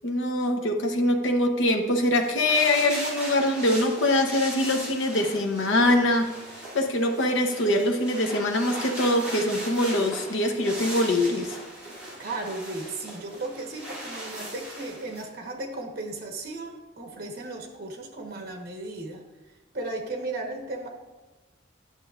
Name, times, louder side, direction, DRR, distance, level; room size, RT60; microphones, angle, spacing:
voice 1, 0.0-6.3 6.7-11.6, left 1 dB, 75° left, 4 dB, 0.8 m, -23 dB
sound 1, 2.1-15.2, right 1 dB, 5° right, 2.5 m, -38 dB
voice 2, 12.2-19.2 19.7-20.9, right 2 dB, 50° right, 1 dB, 1.1 m, -35 dB
9.7 x 6.7 x 2.4 m, 1.2 s
head